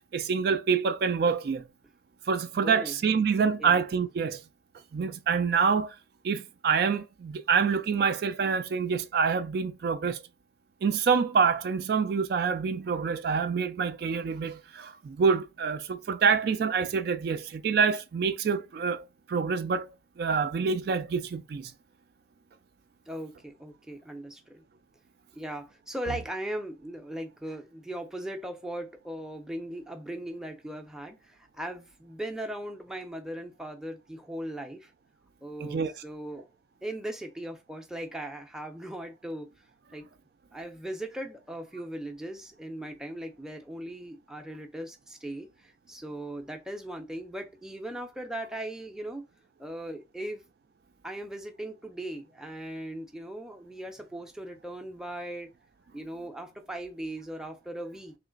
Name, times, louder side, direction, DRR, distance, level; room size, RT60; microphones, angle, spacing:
voice 1, 0.1-1.6 2.3-4.4 4.9-6.0 6.2-10.2 10.8-19.9 20.2-21.7 35.6-35.9, right 5 dB, 55° right, 0.3 m, -26 dB
voice 2, 2.6-3.0 3.6-3.8 23.1-24.6 25.3-34.9 35.4-36.4 36.8-39.5 39.9-40.1 40.5-49.3 49.6-50.4 51.0-55.5 55.9-58.1, right 1 dB, 5° right, 0.5 m, -38 dB
3.2 x 2.9 x 3.8 m
head